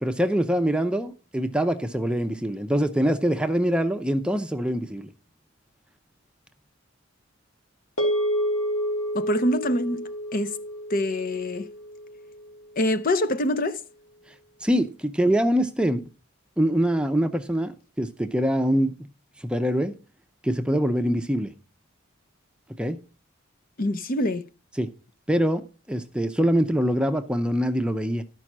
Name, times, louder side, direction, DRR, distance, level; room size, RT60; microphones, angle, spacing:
voice 1, 0.0-5.1 14.6-16.0 16.6-18.9 19.4-20.0 20.4-21.5 22.8-23.0 24.8-24.9 25.3-28.2, equal, 5° right, 0.6 m, -24 dB
sound 1, 8.0-12.5, equal, 85° left, 2.5 m, -29 dB
voice 2, 9.1-10.6 10.9-11.7 12.8-13.8 23.8-24.4, left 1 dB, 45° left, 0.7 m, -25 dB
12.5 x 5.4 x 6.0 m
head